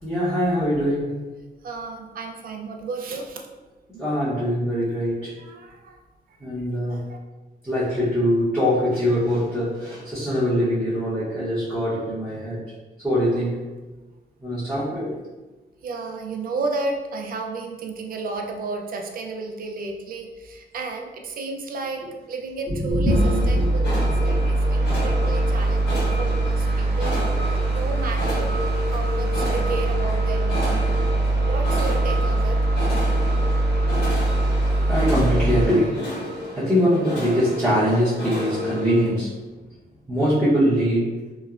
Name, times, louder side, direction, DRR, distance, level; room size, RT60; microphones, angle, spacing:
voice 1, 0.0-1.1 3.9-5.3 6.4-7.0 7.6-12.6 13.0-13.7 14.4-15.1 22.7-23.6 24.2-24.3 24.9-25.0 33.9-34.1 34.9-36.1 36.5-39.3 40.1-41.2, equal, 5° right, -13 dB, 0.7 m, -23 dB
voice 2, 1.6-3.5 5.4-6.0 6.3-7.2 15.8-23.1 23.5-27.2 27.5-28.5 28.9-32.6, right 3 dB, 55° right, 3 dB, 0.4 m, -33 dB
sound 1, 22.9-35.6, right 2 dB, 80° right, 0.8 m, -22 dB
sound 2, 23.1-39.1, equal, 85° left, 1.3 m, -31 dB
3.0 x 2.0 x 2.3 m, 1.2 s
wide cardioid pair, 130°, 17 cm